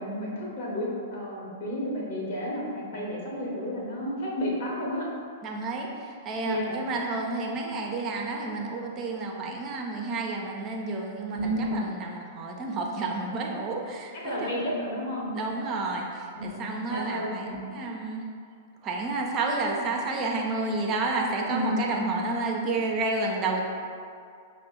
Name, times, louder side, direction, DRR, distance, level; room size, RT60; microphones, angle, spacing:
voice 1, 0.0-5.1 6.4-6.8 11.3-11.9 14.1-15.3 16.3-17.6 21.5-21.9, equal, 55° left, -4 dB, 1.0 m, -31 dB
voice 2, 5.4-5.9 6.3-14.6 15.3-18.2 18.8-23.6, right 3 dB, 30° right, 0 dB, 0.5 m, -30 dB
5.4 x 2.1 x 3.7 m, 2.3 s
figure-of-eight pair, 100°, 0 cm